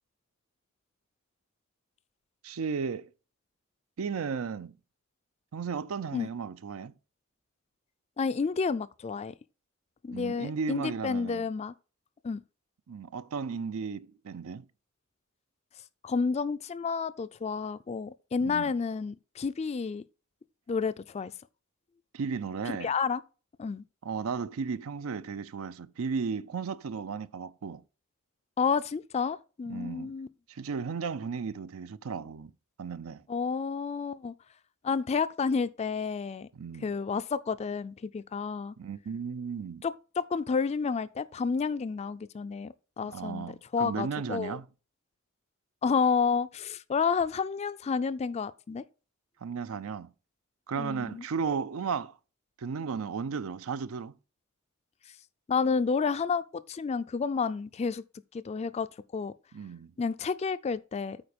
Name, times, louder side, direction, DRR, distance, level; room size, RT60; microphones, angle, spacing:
voice 1, 2.4-3.1 4.0-4.8 5.5-6.9 10.1-11.5 12.9-14.7 18.4-18.7 22.1-22.9 24.0-27.8 29.7-30.1 30.5-32.5 32.8-33.2 36.5-36.9 38.8-39.8 43.1-44.7 49.4-50.1 50.7-52.2 52.6-54.1 59.5-59.9, right 5 dB, 80° right, 0.5 m, -35 dB
voice 2, 8.2-9.3 10.0-11.7 12.2-12.4 16.0-20.0 20.7-21.3 22.8-23.2 23.6-23.8 28.6-30.3 33.3-34.3 34.8-36.5 36.8-38.7 39.8-43.5 43.7-44.6 45.8-48.8 50.8-51.2 55.5-58.0 58.3-58.9 59.1-59.3 60.0-61.2, left 5 dB, 30° left, 0.3 m, -30 dB
8.8 x 4.3 x 5.1 m
head